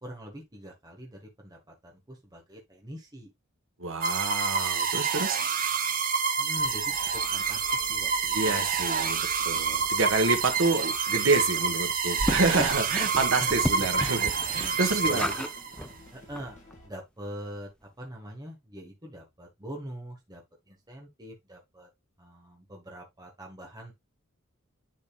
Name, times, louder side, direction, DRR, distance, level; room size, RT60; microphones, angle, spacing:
voice 1, 0.0-3.3 6.4-8.7 13.4-14.0 15.0-15.5 16.1-16.6 16.8-17.7 18.0-20.4 20.7-21.9 22.2-23.9, equal, 20° right, 1.6 m, -43 dB
voice 2, 3.8-5.4 8.3-15.3, right 3 dB, 70° right, 1.6 m, -28 dB
sound 1, 4.0-15.8, right 5 dB, 45° right, 0.8 m, -28 dB
sound 2, 6.5-16.9, left 1 dB, 35° left, 2.7 m, -52 dB
sound 3, 12.2-15.5 15.8-15.9 16.4-16.5 16.7-16.8, equal, 5° left, 0.6 m, -33 dB
10.5 x 4.0 x 2.4 m
head